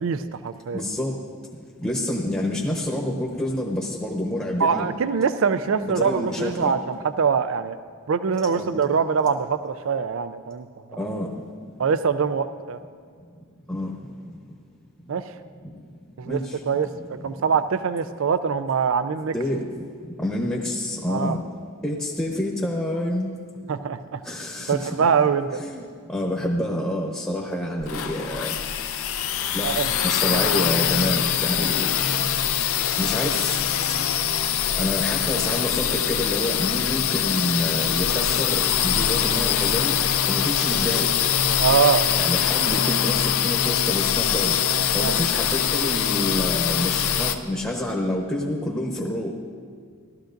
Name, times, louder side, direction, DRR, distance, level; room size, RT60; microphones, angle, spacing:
voice 1, 0.0-0.8 4.6-7.8 8.1-10.7 10.9-11.0 11.8-12.8 15.1-15.3 16.2-16.4 16.7-19.3 21.1-21.4 23.7-24.2 24.7-25.7 29.6-29.9 41.6-42.0 45.0-45.2, right 6 dB, 60° right, 12 dB, 0.4 m, -23 dB
voice 2, 0.7-1.2 1.8-4.9 5.8-6.7 8.5-8.7 11.0-11.3 13.7-14.0 15.6-15.7 16.2-16.6 19.3-19.6 20.2-21.4 21.8-23.3 24.2-24.9 25.6-28.6 29.5-29.7 30.0-31.9 33.0-33.6 34.8-40.0 40.3-41.1 42.1-44.6 44.9-49.3, left 1 dB, 10° left, -3 dB, 0.9 m, -28 dB
sound 1, 27.8-47.4, left 9 dB, 70° left, 0.5 m, -23 dB
16.5 x 13.0 x 2.6 m, 2.1 s
head